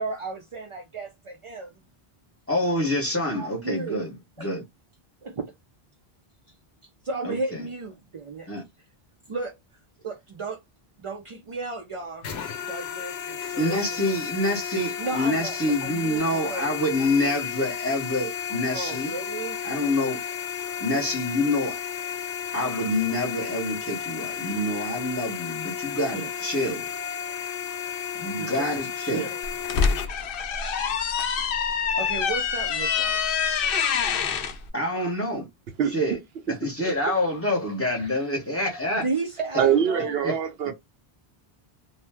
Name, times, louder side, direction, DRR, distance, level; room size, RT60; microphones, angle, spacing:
voice 1, 0.0-1.7 3.3-4.0 4.4-4.5 5.2-5.4 7.0-8.5 9.3-9.5 10.0-10.6 11.0-12.3 12.7-14.1 15.0-16.7 17.0-17.1 18.7-19.6 26.1-26.3 28.4-29.4 29.8-30.1 32.0-33.2 39.0-40.2, right 3 dB, 45° right, 0.4 m, -34 dB
voice 2, 2.5-4.1 4.4-4.6 7.2-7.6 8.5-8.6 13.6-19.1 19.6-20.2 20.8-21.8 22.5-26.9 28.2-29.3 34.7-35.5 35.9-36.2 36.5-39.0 40.2-40.3, left 1 dB, 15° left, 0.9 m, -27 dB
sound 1, 12.2-30.1, left 8 dB, 85° left, 0.9 m, -33 dB
sound 2, 29.4-34.5, left 6 dB, 65° left, 0.7 m, -25 dB
voice 3, 39.6-40.7, right 8 dB, 70° right, 0.8 m, -23 dB
2.7 x 2.1 x 3.4 m
omnidirectional pair, 1.0 m